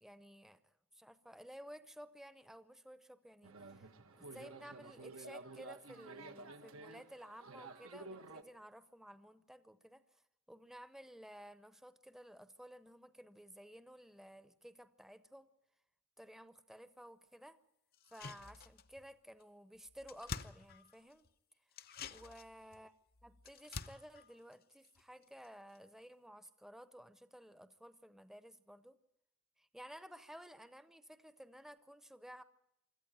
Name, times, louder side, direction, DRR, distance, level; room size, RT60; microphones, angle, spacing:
voice 1, 0.0-3.9 4.2-10.2 10.5-15.5 16.2-17.6 18.1-21.3 22.1-22.9 23.2-29.0 29.6-32.4, equal, ahead, 0.7 m, -55 dB
sound 1, 3.4-8.4, right 3 dB, 90° right, 1.5 m, -52 dB
sound 2, 17.9-19.1 19.4-19.5 19.7-21.3 21.7-25.5 25.7-25.8, left 5 dB, 45° left, 0.7 m, -49 dB
25.5 x 14.0 x 8.9 m
head